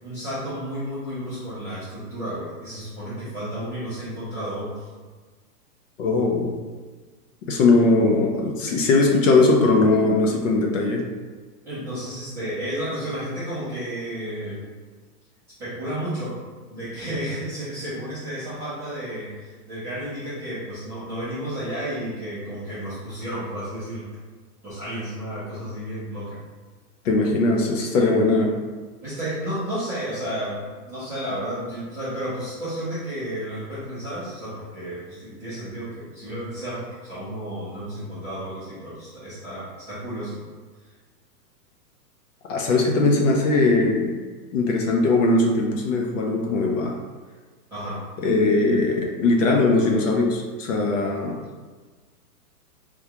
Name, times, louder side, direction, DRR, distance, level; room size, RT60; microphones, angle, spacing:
voice 1, 0.0-4.9 11.6-14.6 15.6-16.4 16.7-24.1 24.6-26.4 29.0-40.4 47.7-48.0, right 1 dB, 5° right, -16 dB, 0.5 m, -32 dB
voice 2, 6.0-6.6 7.5-11.0 27.0-28.5 42.5-44.2 44.5-47.0 48.2-51.4, left 3 dB, 55° left, 1 dB, 0.6 m, -20 dB
3.6 x 2.3 x 2.8 m, 1.4 s
hypercardioid pair, 150°, 47 cm